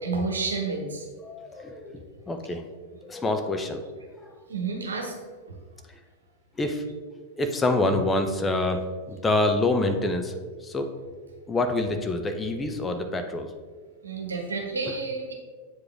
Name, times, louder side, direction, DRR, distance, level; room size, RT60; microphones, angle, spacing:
voice 1, 0.0-1.1 4.5-5.2 14.0-15.3, right 4 dB, 70° right, 2 dB, 1.2 m, -30 dB
voice 2, 1.2-2.6 3.0-3.8 4.2-4.3 6.6-6.8 7.4-10.3 10.6-10.9 11.5-13.5, left 2 dB, 15° left, 6 dB, 0.6 m, -26 dB
7.8 x 4.9 x 3.5 m, 1.5 s
figure-of-eight pair, 90°, 0 cm